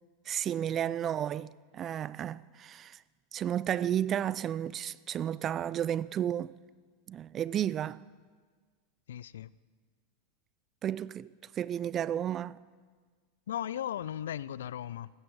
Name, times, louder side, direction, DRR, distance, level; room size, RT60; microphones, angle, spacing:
voice 1, 0.3-3.0 3.3-6.5 7.1-8.0 10.8-12.6, right 10 dB, 35° right, 0.4 m, -32 dB
voice 2, 9.1-9.5 13.5-15.1, left 10 dB, 75° left, 0.3 m, -36 dB
16.0 x 14.0 x 4.8 m
hypercardioid pair, 95°, 0 cm